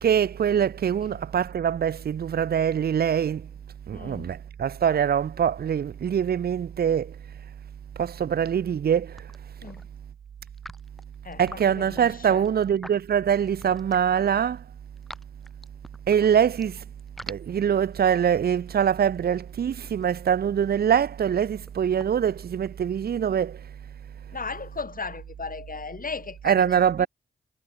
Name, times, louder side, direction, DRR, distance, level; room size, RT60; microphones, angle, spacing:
voice 1, 0.0-3.5 3.9-7.2 8.0-9.2 11.4-14.6 16.1-16.8 17.3-23.6 26.4-27.1, right 8 dB, 55° right, 0.5 m, -24 dB
voice 2, 3.9-4.4 9.6-9.8 11.2-12.5 24.3-27.1, left 4 dB, 45° left, 2.2 m, -37 dB
sound 1, 8.7-8.9 9.2-9.8 10.5-14.2 14.6-16.6 17.0-23.1, equal, ahead, 1.8 m, -47 dB
cardioid pair, 45°, 19 cm